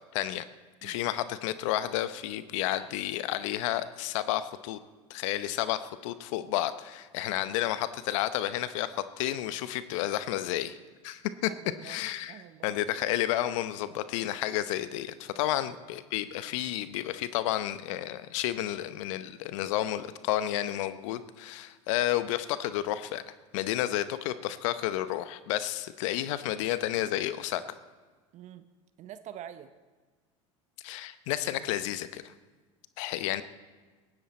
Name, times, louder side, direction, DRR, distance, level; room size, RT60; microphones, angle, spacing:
voice 1, 0.1-0.4 0.8-4.8 5.1-10.8 11.0-11.5 11.8-23.2 23.5-27.6 30.8-32.3 33.0-33.4, left 13 dB, 65° left, 13 dB, 0.8 m, -31 dB
voice 2, 11.5-12.0 12.3-12.7 15.4-15.6 28.3-28.7 29.0-29.7, right 10 dB, 45° right, 12 dB, 0.8 m, -46 dB
18.5 x 16.0 x 4.3 m, 1.3 s
hypercardioid pair, 80°, 17 cm